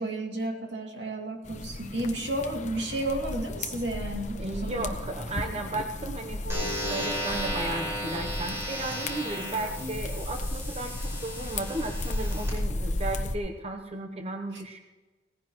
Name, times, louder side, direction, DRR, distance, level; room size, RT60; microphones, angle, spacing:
voice 1, 0.0-4.9 14.5-14.6, right 1 dB, 75° right, 1 dB, 2.5 m, -32 dB
sound 1, 1.4-13.4, left 2 dB, 40° left, 0.9 m, -35 dB
voice 2, 4.4-14.8, right 2 dB, 35° right, 4 dB, 0.9 m, -35 dB
sound 2, 6.4-13.0, left 2 dB, 50° right, 4.1 m, -43 dB
sound 3, 6.5-12.5, equal, 15° right, 5.8 m, -35 dB
18.0 x 15.5 x 3.1 m, 1.2 s
head